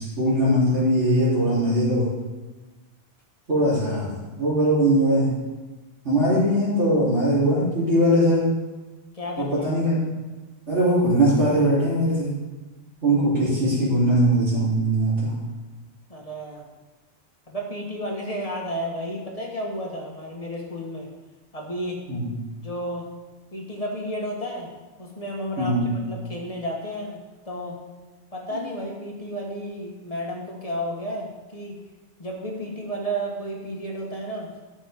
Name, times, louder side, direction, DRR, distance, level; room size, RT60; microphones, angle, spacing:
voice 1, 0.0-2.1 3.5-5.3 6.0-8.4 9.4-10.1 10.7-12.3 13.0-15.4 22.1-22.2 25.6-25.9 28.5-28.6, right 1 dB, 85° right, -10 dB, 4.0 m, -21 dB
voice 2, 9.1-9.7 16.1-16.6 17.5-21.1 21.5-22.0 22.6-23.0 23.5-24.7 25.0-25.8 26.1-27.2 27.4-27.7 28.3-31.7 32.2-34.6, equal, 30° left, -1 dB, 1.6 m, -32 dB
13.5 x 6.2 x 3.7 m, 1.2 s
omnidirectional pair, 1.2 m